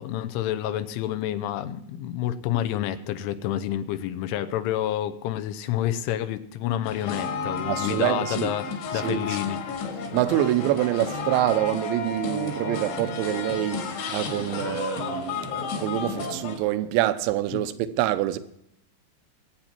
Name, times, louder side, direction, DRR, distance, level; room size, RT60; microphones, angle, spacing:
voice 1, 0.0-8.7 8.9-9.6 17.5-17.6, left 12 dB, 85° left, 3.4 m, -29 dB
sound 1, 6.8-16.6, left 4 dB, 70° left, 4.4 m, -32 dB
voice 2, 7.7-8.5 9.0-9.4 10.1-18.4, right 14 dB, 80° right, 3.0 m, -26 dB
22.5 x 8.9 x 4.5 m
omnidirectional pair, 5.5 m